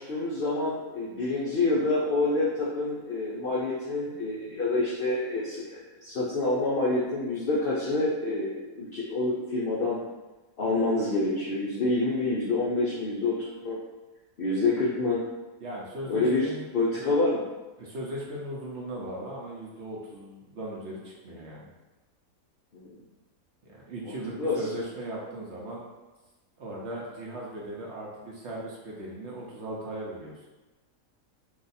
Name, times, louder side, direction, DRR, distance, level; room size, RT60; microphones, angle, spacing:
voice 1, 0.0-10.0 10.6-13.8 14.4-15.2 16.1-16.5 16.7-17.4 22.7-23.0 24.0-24.6, left 2 dB, 65° left, -6 dB, 0.5 m, -27 dB
voice 2, 15.6-16.7 17.0-17.1 17.8-21.7 23.6-25.8 26.6-30.3, right 1 dB, 60° right, -4 dB, 0.8 m, -38 dB
2.6 x 2.3 x 4.0 m, 1.1 s
omnidirectional pair, 1.5 m